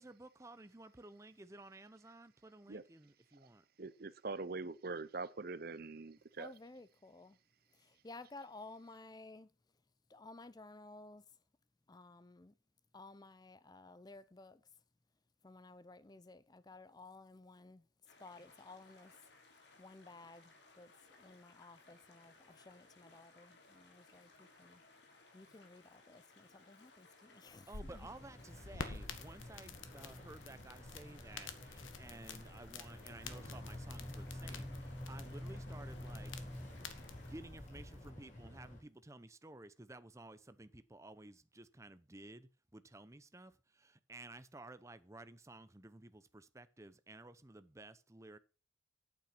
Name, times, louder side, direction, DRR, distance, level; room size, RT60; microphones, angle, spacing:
voice 1, 0.0-3.6 27.7-36.8 37.2-48.4, right 2 dB, 15° right, 0.7 m, -54 dB
voice 2, 3.8-6.5, right 3 dB, 50° right, 0.7 m, -43 dB
voice 3, 6.4-7.4 7.8-9.5 10.1-11.2 11.9-12.5 12.9-14.6 15.4-17.8 18.2-19.1 19.8-20.9 21.2-24.8 25.3-27.7, left 2 dB, 20° left, 0.4 m, -55 dB
sound 1, 18.1-37.3, left 3 dB, 60° left, 3.0 m, -63 dB
sound 2, 27.5-38.1, left 4 dB, 85° left, 1.6 m, -51 dB
Boat Water vehicle, 28.0-38.8, left 1 dB, 40° left, 4.2 m, -49 dB
8.9 x 8.8 x 5.8 m
head